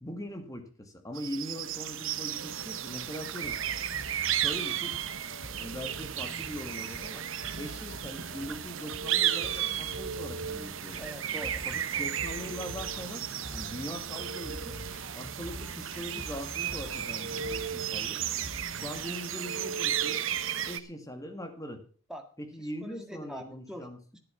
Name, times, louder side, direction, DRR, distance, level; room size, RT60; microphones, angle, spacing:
voice 1, 0.0-3.6 4.3-4.9 5.6-7.3 7.5-11.0 11.7-13.3 13.5-14.8 15.1-18.2 18.7-20.2 20.7-21.8 22.4-24.0, equal, 15° left, 6 dB, 1.9 m, -41 dB
sound 1, 1.2-20.8, right 10 dB, 65° right, 0.9 m, -34 dB
sound 2, 3.4-19.2, equal, 60° left, 5.9 m, -46 dB
voice 2, 11.0-11.6 22.1-22.3 22.6-24.2, equal, 5° right, 4 dB, 1.8 m, -43 dB
11.0 x 11.0 x 5.7 m, 0.40 s
head